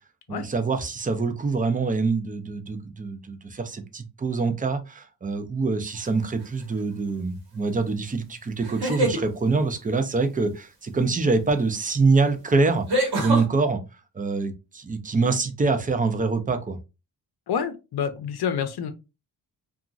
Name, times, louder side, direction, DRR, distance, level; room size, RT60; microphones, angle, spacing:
voice 1, 0.3-12.9 13.2-13.8 14.1-16.8, right 4 dB, 20° right, 0.4 m, -25 dB
sound 1, 6.0-6.4 8.6-9.2 11.5-11.6 12.9-13.4, right 1 dB, 65° right, 1.2 m, -25 dB
voice 2, 17.5-18.9, left 7 dB, 70° left, 0.6 m, -28 dB
2.8 x 2.4 x 2.5 m
wide cardioid pair, 120°, 40 cm